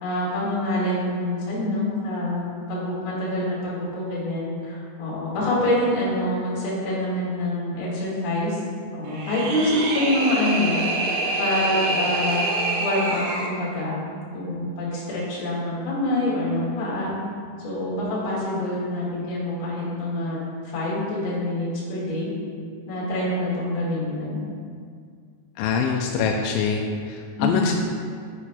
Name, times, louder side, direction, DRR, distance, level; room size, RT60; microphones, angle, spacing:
voice 1, 0.0-8.6 8.9-12.4 12.8-14.0 14.3-17.1 17.6-20.4 20.7-22.3 22.9-24.4 27.4-27.8, left 1 dB, 60° left, -7 dB, 3.7 m, -26 dB
sound 1, 9.1-13.5, right 2 dB, 75° right, 2.4 m, -26 dB
voice 2, 25.6-27.7, left 5 dB, 90° left, 2 dB, 2.9 m, -24 dB
8.7 x 8.6 x 2.3 m, 2.1 s
omnidirectional pair, 5.3 m